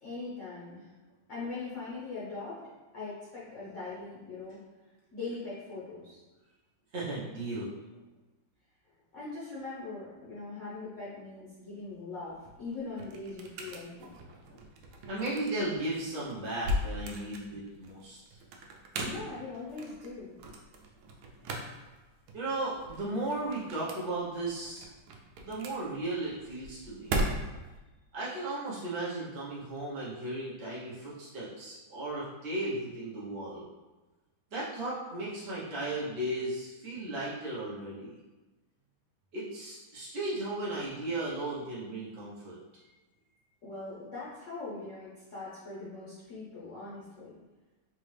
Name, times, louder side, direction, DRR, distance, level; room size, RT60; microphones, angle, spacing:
voice 1, 0.0-0.9 1.3-2.6 2.9-4.6 5.1-6.2 9.1-14.1 18.9-20.3 43.6-47.4, left 3 dB, 50° left, -8 dB, 1.0 m, -41 dB
voice 2, 6.9-7.8 15.1-18.2 22.3-24.8 25.5-27.2 28.1-33.7 34.5-38.1 39.3-42.6, right 2 dB, 50° right, -9 dB, 0.8 m, -35 dB
sound 1, 12.3-27.8, equal, 85° right, 1.4 m, -39 dB
4.2 x 2.5 x 3.2 m, 1.2 s
omnidirectional pair, 2.2 m